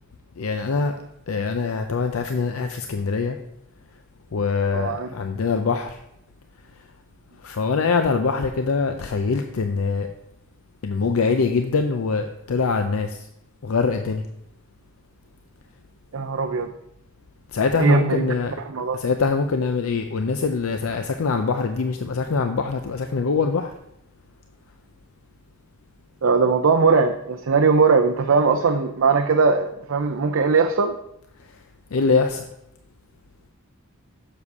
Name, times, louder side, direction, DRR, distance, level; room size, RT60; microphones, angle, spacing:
voice 1, 0.4-0.9 1.3-3.4 4.3-5.9 7.4-10.1 10.8-13.1 13.6-14.2 17.5-18.5 19.0-23.7 31.9-32.5, left 4 dB, 80° left, 7 dB, 0.5 m, -23 dB
voice 2, 4.7-5.1 16.1-16.7 17.8-19.0 26.2-31.0, right 4 dB, 70° right, 4 dB, 0.5 m, -20 dB
7.4 x 6.8 x 4.7 m, 0.79 s
head